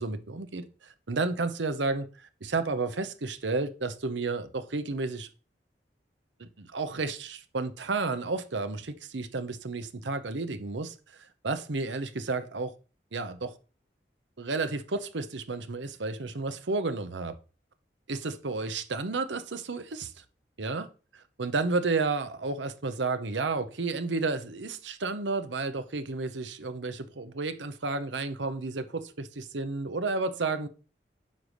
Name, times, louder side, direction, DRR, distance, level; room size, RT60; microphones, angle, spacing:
voice 1, 0.0-5.3 6.4-12.7 13.1-13.5 14.4-17.3 18.1-20.2 20.6-30.7, right 3 dB, 85° right, 0.9 m, -32 dB
9.4 x 3.4 x 6.4 m
head